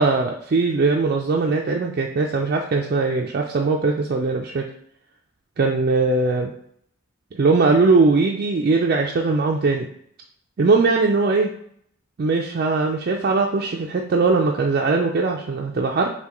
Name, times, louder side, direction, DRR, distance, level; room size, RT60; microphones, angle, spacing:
voice 1, 0.0-4.6 5.6-6.5 7.3-9.9 10.6-11.5 12.2-16.1, right 3 dB, 45° right, 0 dB, 0.4 m, -20 dB
5.6 x 2.2 x 3.0 m, 0.67 s
head